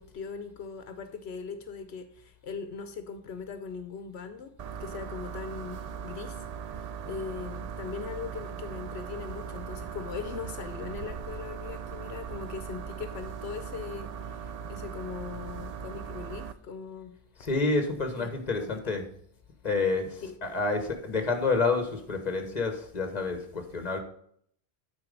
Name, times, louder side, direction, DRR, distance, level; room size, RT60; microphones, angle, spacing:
voice 1, 0.0-4.5 4.8-6.4 6.7-17.1 18.1-18.3 18.6-19.0 20.2-20.4, left 6 dB, 85° left, 9 dB, 1.0 m, -40 dB
sound 1, 4.6-16.5, right 7 dB, 50° right, 0.5 m, -39 dB
voice 2, 17.4-19.0 19.6-24.0, left 3 dB, 40° left, 6 dB, 1.5 m, -29 dB
9.0 x 4.2 x 5.2 m, 0.64 s
omnidirectional pair, 1.1 m